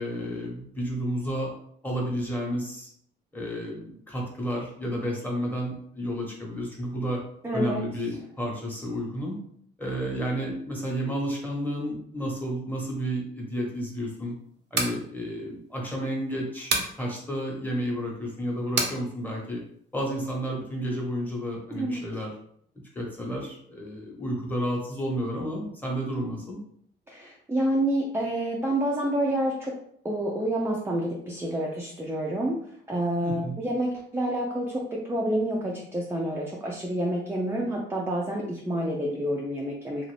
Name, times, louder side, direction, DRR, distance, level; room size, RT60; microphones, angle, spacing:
voice 1, 0.0-1.5 1.8-2.9 3.3-7.2 7.5-9.4 9.8-14.3 14.7-19.6 19.9-22.3 22.9-26.6 33.2-33.5, equal, 10° left, -2 dB, 1.1 m, -31 dB
voice 2, 7.4-7.8 21.7-22.0 27.1-29.7 30.0-32.6 32.9-40.0, right 1 dB, 10° right, -2 dB, 0.5 m, -28 dB
sound 1, 14.5-15.0 16.7-17.0 18.8-19.0, right 4 dB, 65° right, 0.6 m, -26 dB
2.5 x 2.4 x 3.3 m, 0.66 s
cardioid pair, 90°, 20 cm